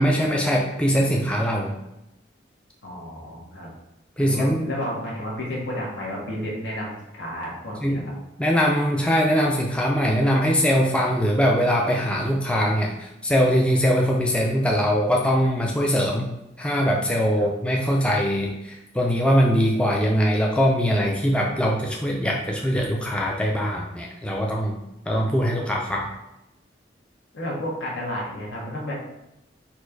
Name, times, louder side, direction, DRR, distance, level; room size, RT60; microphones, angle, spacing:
voice 1, 0.0-1.7 4.2-4.7 7.8-8.0 8.4-16.3 16.6-24.7 25.1-26.1, equal, 5° left, -2 dB, 0.4 m, -22 dB
voice 2, 2.8-3.7 4.2-8.1 17.3-17.5 27.3-28.9, equal, 75° left, -4 dB, 1.3 m, -32 dB
4.3 x 2.6 x 4.5 m, 0.88 s
head